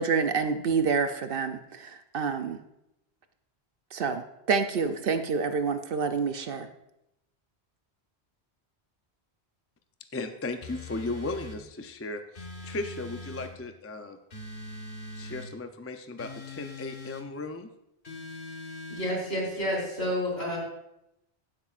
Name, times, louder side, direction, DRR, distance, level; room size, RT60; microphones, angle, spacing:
voice 1, 0.0-2.6 3.9-6.7, right 5 dB, 60° right, 8 dB, 0.8 m, -28 dB
voice 2, 10.1-14.2 15.2-17.7, left 2 dB, 20° left, 7 dB, 0.4 m, -36 dB
sound 1, 10.6-11.6 12.3-13.5 14.3-15.5 16.2-17.3 18.0-19.2, left 2 dB, 50° left, 1.5 m, -42 dB
voice 3, 18.9-20.6, equal, 70° left, -4 dB, 4.2 m, -29 dB
15.5 x 8.3 x 2.5 m, 0.86 s
omnidirectional pair, 1.1 m